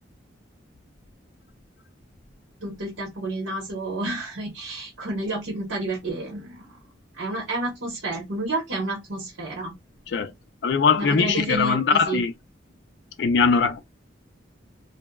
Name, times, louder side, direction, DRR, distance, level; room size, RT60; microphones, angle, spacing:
voice 1, 2.6-6.6 7.2-9.7 11.0-12.2, right 2 dB, 90° right, 1.0 m, -30 dB
voice 2, 10.6-12.3 13.2-13.8, left 5 dB, 60° left, 0.3 m, -21 dB
2.6 x 2.1 x 2.2 m
head